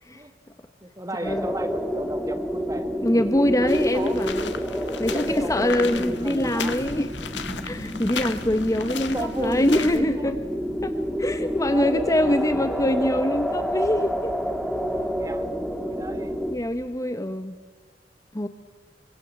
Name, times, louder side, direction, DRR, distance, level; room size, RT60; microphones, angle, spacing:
voice 1, 0.8-3.0 3.3-4.2 5.0-7.0 9.0-10.3 11.7-12.9 14.7-16.4, right 1 dB, 20° right, 7 dB, 1.9 m, -35 dB
sound 1, 1.2-16.6, equal, ahead, 1.7 m, -29 dB
voice 2, 3.0-4.4 5.0-7.1 7.6-10.4 10.8-10.9 11.2-14.3 16.5-17.5 18.3-18.5, left 1 dB, 20° left, 9 dB, 0.9 m, -24 dB
sound 2, 3.4-17.0, equal, 60° left, 1.8 m, -47 dB
sound 3, 3.7-10.0, left 5 dB, 80° left, 1.6 m, -36 dB
26.5 x 24.0 x 7.6 m, 1.4 s
head